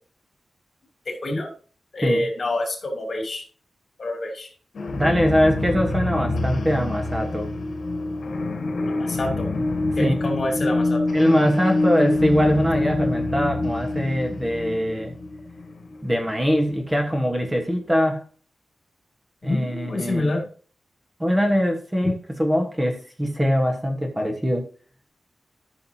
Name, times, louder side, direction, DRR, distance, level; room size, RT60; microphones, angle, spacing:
voice 1, 1.0-1.5 1.9-3.5 4.0-4.5 8.9-9.5 9.9-11.0 19.4-20.5 22.0-22.1, left 2 dB, 45° left, 2 dB, 3.1 m, -27 dB
sound 1, 4.7-17.3, left 2 dB, 65° left, 1.5 m, -26 dB
voice 2, 4.9-7.5 10.0-10.1 11.1-15.1 16.0-18.3 19.4-20.3 21.2-24.7, equal, 15° right, 3 dB, 1.3 m, -22 dB
14.0 x 6.5 x 2.8 m, 0.41 s
wide cardioid pair, 130°, 0 cm